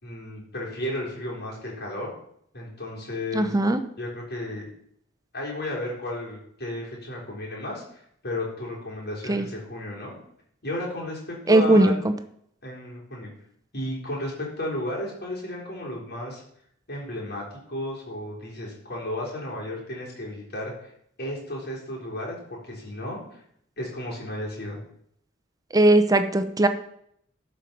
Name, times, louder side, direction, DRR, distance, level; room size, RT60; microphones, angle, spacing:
voice 1, 0.0-2.1 2.5-3.5 4.0-4.7 5.3-10.2 10.6-11.9 12.6-13.3 13.7-16.4 16.9-20.9 21.2-23.2 23.8-24.8, left 1 dB, 55° left, -3 dB, 3.8 m, -33 dB
voice 2, 3.3-3.8 9.3-9.5 11.5-12.1 25.7-26.7, right 1 dB, 20° right, 10 dB, 0.7 m, -19 dB
12.5 x 5.3 x 5.9 m, 0.71 s
head